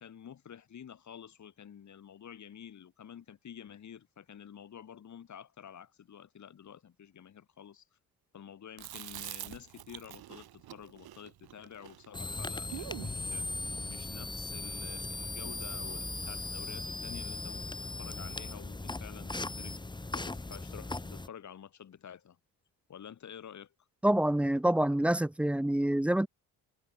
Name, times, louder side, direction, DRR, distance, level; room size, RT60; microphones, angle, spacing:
voice 1, 0.0-7.9 8.3-22.4 22.9-23.7, left 8 dB, 45° left, 7.7 m, -50 dB
Chewing mastication, 8.8-13.2, right 13 dB, 70° right, 5.9 m, -45 dB
sound 1, 12.1-21.3, left 2 dB, 10° left, 2.6 m, -38 dB
voice 2, 24.0-26.3, right 1 dB, 5° right, 0.3 m, -27 dB
cardioid pair, 125°, 38 cm